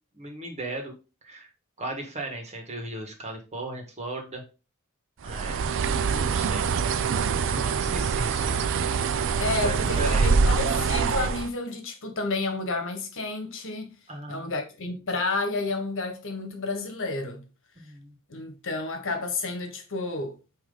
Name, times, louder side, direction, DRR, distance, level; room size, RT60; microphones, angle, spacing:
voice 1, 0.1-0.9 1.2-1.5 1.8-4.4 5.2-7.0 7.5-8.6 9.6-10.3 14.1-14.5 17.8-18.1, right 2 dB, 30° right, 1.7 m, -37 dB
Bird, 5.2-11.5, right 5 dB, 60° right, 0.5 m, -25 dB
voice 2, 9.4-13.9 14.3-17.4 18.3-20.4, left 3 dB, 60° left, 1.4 m, -30 dB
8.8 x 3.1 x 3.9 m
head